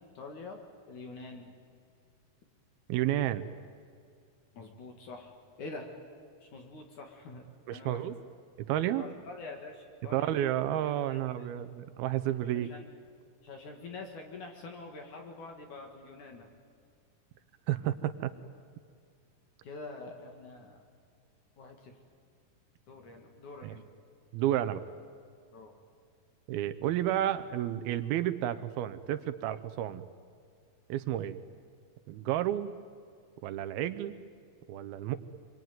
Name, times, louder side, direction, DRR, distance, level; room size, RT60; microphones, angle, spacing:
voice 1, 0.1-0.6 0.9-1.5 4.5-5.3 5.6-5.9 6.4-7.4 7.7-8.1 8.9-10.3 11.1-11.7 12.4-13.0 13.4-16.5 19.6-20.8 21.6-21.9 22.9-23.8 25.5-25.7, left 3 dB, 60° left, 3 dB, 3.2 m, -46 dB
voice 2, 2.9-3.5 7.7-8.2 8.7-9.0 10.1-12.7 17.7-18.3 23.6-23.8 24.3-24.8 26.5-30.1 30.9-31.4 32.1-32.7 33.4-34.2 34.7-35.2, right 12 dB, 85° right, 12 dB, 2.7 m, -31 dB
27.0 x 23.5 x 9.4 m, 2.2 s
omnidirectional pair, 4.3 m